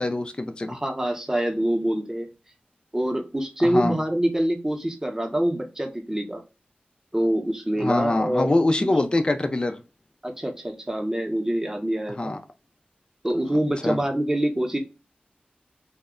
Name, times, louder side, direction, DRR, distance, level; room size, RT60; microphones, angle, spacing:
voice 1, 0.0-0.8 3.6-4.0 7.7-9.8 12.2-12.4 13.8-14.0, left 2 dB, 30° left, 0.3 m, -24 dB
voice 2, 0.7-2.3 2.9-6.4 7.1-8.5 8.8-8.9 10.2-12.3 13.2-14.8, right 1 dB, 15° right, 0.6 m, -25 dB
2.1 x 2.0 x 3.5 m
wide cardioid pair, 85°, 3 cm